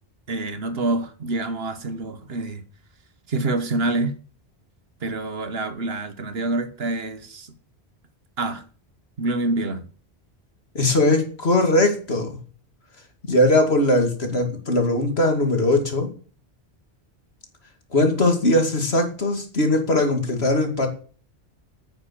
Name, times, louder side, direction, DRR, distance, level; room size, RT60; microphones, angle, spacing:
voice 1, 0.3-2.6 3.3-4.1 5.0-7.5 8.4-8.6 9.2-9.9, right 2 dB, 70° right, 1.5 m, -26 dB
voice 2, 10.7-12.4 13.2-16.1 17.9-20.9, left 1 dB, 75° left, 2.7 m, -20 dB
9.6 x 9.0 x 7.6 m
omnidirectional pair, 1.1 m